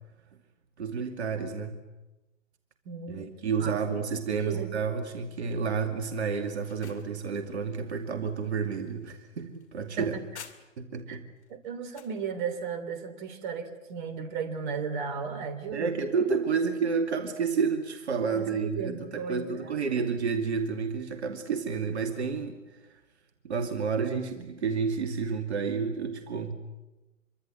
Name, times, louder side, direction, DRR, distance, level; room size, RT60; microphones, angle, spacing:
voice 1, 0.8-1.8 3.1-10.1 10.8-11.2 15.7-23.0 23.4-26.5, right 5 dB, 60° right, 6 dB, 2.6 m, -30 dB
voice 2, 2.8-4.8 10.0-10.2 11.1-11.2 11.5-15.9 18.3-20.1, right 6 dB, 35° right, 10 dB, 3.1 m, -36 dB
sound 1, 6.4-11.0 11.4-12.2, left 7 dB, 60° left, 2.5 m, -52 dB
26.0 x 24.0 x 8.0 m, 1.1 s
figure-of-eight pair, 120°, 38 cm